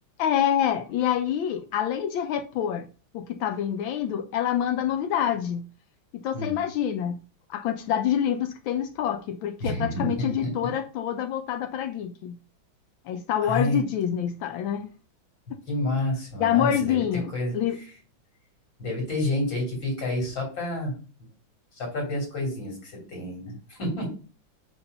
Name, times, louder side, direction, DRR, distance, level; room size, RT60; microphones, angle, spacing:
voice 1, 0.2-2.9 3.1-5.6 6.1-7.2 7.5-12.4 13.1-14.9 16.4-17.8, left 9 dB, 80° left, 1.4 m, -26 dB
voice 2, 9.6-10.7 13.4-13.8 15.7-17.0 17.3-17.5 18.8-20.9 21.7-24.1, left 1 dB, 65° left, 4.1 m, -29 dB
5.8 x 5.8 x 5.4 m
omnidirectional pair, 2.2 m